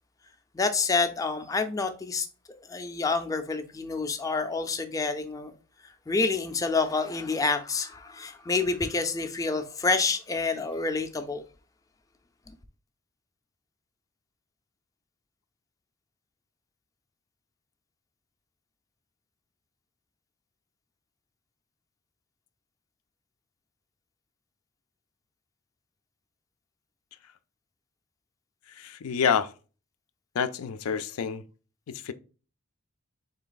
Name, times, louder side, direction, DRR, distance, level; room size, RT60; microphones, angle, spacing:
voice 1, 0.5-2.3 2.7-5.5 6.1-11.4, left 4 dB, 15° left, 0.4 m, -28 dB
voice 2, 28.8-29.5 30.3-31.4 31.9-32.1, left 7 dB, 90° left, 0.4 m, -28 dB
3.9 x 3.2 x 3.9 m
head